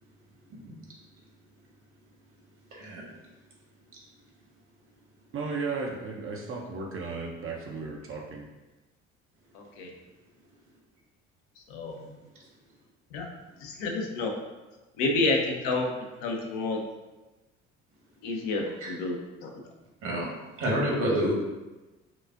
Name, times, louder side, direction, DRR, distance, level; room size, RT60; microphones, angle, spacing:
voice 1, 2.7-3.0 18.8-18.9 20.0-20.2 20.6-21.3, right 1 dB, 55° right, -3 dB, 1.5 m, -28 dB
voice 2, 5.3-8.4, right 4 dB, 35° right, 0 dB, 0.6 m, -35 dB
voice 3, 9.5-9.9 11.7-12.1 13.1-13.3 13.6-14.3 15.0-15.9 16.2-16.8 18.2-19.5, left 3 dB, 65° left, 1 dB, 0.8 m, -29 dB
5.8 x 2.4 x 2.4 m, 1.1 s
figure-of-eight pair, 55°, 37 cm